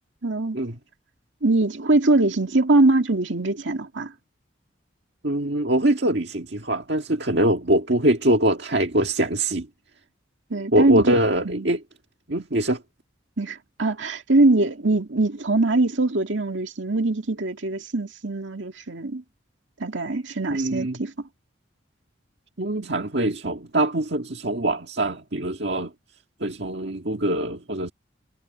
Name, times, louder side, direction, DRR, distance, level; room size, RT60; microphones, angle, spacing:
voice 1, 0.2-0.6 1.4-4.1 10.5-11.2 11.4-11.7 13.4-19.2 19.8-21.1, right 2 dB, 75° right, 2.2 m, -22 dB
voice 2, 5.2-9.7 10.7-11.8 12.3-12.8 20.5-21.0 22.6-25.9 26.4-27.9, right 1 dB, 60° right, 1.8 m, -23 dB
head